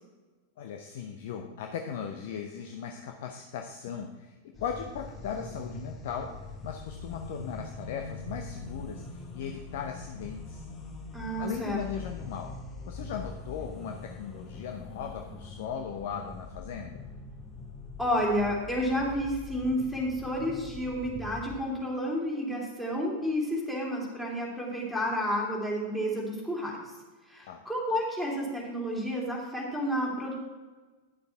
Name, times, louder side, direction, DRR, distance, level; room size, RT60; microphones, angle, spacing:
voice 1, 0.6-10.7 11.4-12.6 12.9-17.1 27.5-27.6, left 7 dB, 55° left, 4 dB, 0.7 m, -38 dB
sound 1, 4.5-21.6, left 3 dB, 25° left, 1.3 m, -43 dB
voice 2, 11.1-11.8 18.0-26.8 27.3-30.3, equal, ahead, -4 dB, 3.0 m, -30 dB
11.5 x 6.7 x 4.6 m, 1.2 s
figure-of-eight pair, 90°, 0 cm